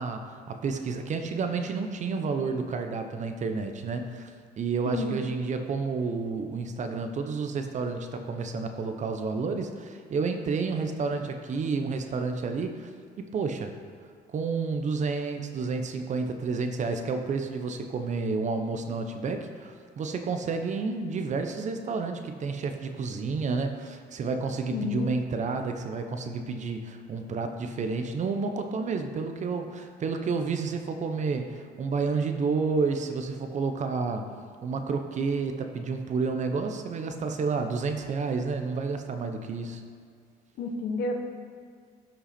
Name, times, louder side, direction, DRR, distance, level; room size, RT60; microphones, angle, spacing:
voice 1, 0.0-4.3 4.6-12.9 13.2-13.7 14.3-34.3 34.6-39.8, right 4 dB, 45° right, 6 dB, 0.8 m, -30 dB
voice 2, 4.8-5.2 24.7-25.2 40.6-41.1, left 3 dB, 70° left, 3 dB, 1.0 m, -30 dB
12.5 x 5.6 x 4.3 m, 2.1 s
cardioid pair, 110°, 17 cm